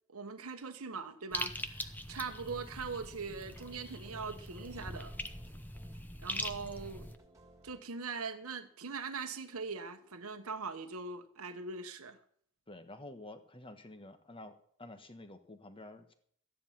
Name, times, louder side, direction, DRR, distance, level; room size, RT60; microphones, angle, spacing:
voice 1, 0.1-5.2 6.2-7.1 7.6-12.2, right 4 dB, 70° right, 1.2 m, -41 dB
sound 1, 1.3-7.1, left 1 dB, 10° left, 0.8 m, -42 dB
sound 2, 2.4-7.8, right 1 dB, 15° right, 2.6 m, -62 dB
voice 2, 12.7-16.1, left 2 dB, 25° left, 1.3 m, -50 dB
13.5 x 10.0 x 5.7 m
head